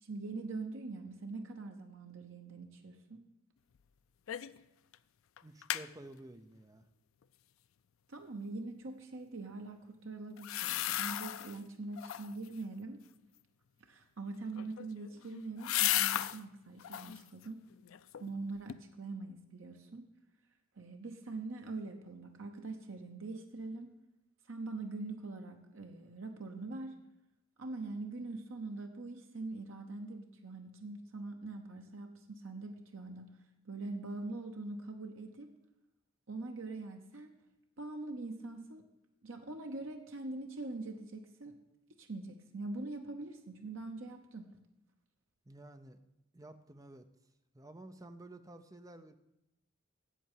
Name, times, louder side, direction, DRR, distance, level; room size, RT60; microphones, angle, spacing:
voice 1, 0.0-3.2 8.1-13.0 13.9-17.6 18.2-20.1 20.8-23.9 24.5-27.0 27.6-33.3 33.7-35.5 36.3-37.3 37.8-38.8 39.2-41.6 41.9-44.5, right 3 dB, 70° right, 4 dB, 0.9 m, -43 dB
sound 1, 4.3-4.6 4.9-5.0 5.4-5.9 10.4-11.6 12.0-12.5 14.4-16.4 16.8-17.2 17.7-18.4 18.7-18.8, left 13 dB, 75° left, 0.4 m, -35 dB
voice 2, 5.4-6.9 45.4-46.0 46.3-47.1 47.5-49.2, right 1 dB, 15° right, 8 dB, 0.6 m, -52 dB
8.3 x 8.0 x 7.4 m, 0.89 s
head